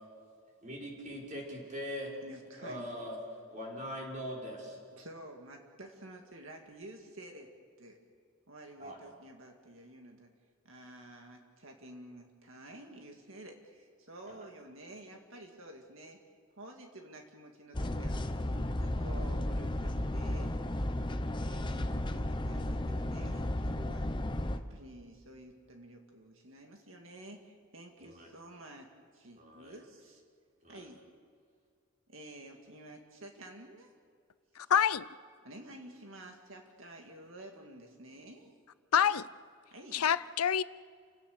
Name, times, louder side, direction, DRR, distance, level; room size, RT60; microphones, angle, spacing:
voice 1, 0.6-2.1 2.6-3.2 3.5-4.8 8.8-9.0 14.3-14.5 28.0-28.3 29.4-29.8 30.6-30.8, equal, 35° right, -2 dB, 5.4 m, -41 dB
voice 2, 2.2-2.9 5.0-7.5 7.8-8.0 8.5-10.3 10.6-16.2 16.6-18.1 18.4-21.1 21.4-24.1 24.7-30.2 30.7-31.0 32.1-33.9 34.6-34.7 35.4-38.5 39.7-40.1, right 1 dB, 65° right, 3 dB, 2.1 m, -51 dB
sound 1, 17.7-24.6, left 1 dB, 20° left, 0.8 m, -34 dB
voice 3, 34.6-35.0 38.9-39.2 39.9-40.6, left 8 dB, 85° left, 17 dB, 0.6 m, -26 dB
29.5 x 17.0 x 6.6 m, 2.1 s
head